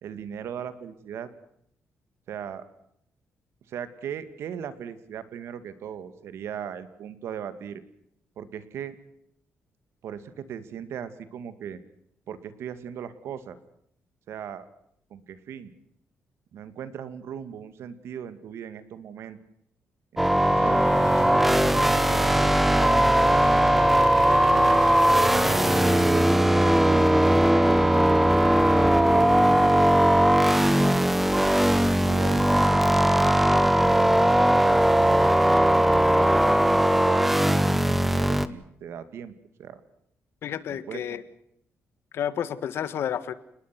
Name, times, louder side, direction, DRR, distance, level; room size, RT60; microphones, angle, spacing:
voice 1, 0.0-1.3 2.3-2.6 3.7-7.8 8.4-9.0 10.0-11.8 12.3-13.6 14.3-14.7 15.1-15.7 16.5-19.4 20.1-20.8 21.4-23.8 24.2-24.7 25.5-29.8 30.5-31.0 31.7-33.3 33.8-34.2 35.4-36.4 36.9-39.3 39.6-39.8 40.7-41.2, right 8 dB, 65° right, 12 dB, 2.2 m, -38 dB
sound 1, 20.2-38.5, right 1 dB, 5° right, 0.9 m, -19 dB
sound 2, 20.4-26.1, right 4 dB, 80° right, 5.6 m, -34 dB
sound 3, 22.9-37.2, left 4 dB, 35° left, 4.1 m, -47 dB
voice 2, 40.4-41.2 42.1-43.3, left 9 dB, 60° left, 15 dB, 1.5 m, -30 dB
30.0 x 20.0 x 6.1 m, 0.73 s
cardioid pair, 180°, 5 cm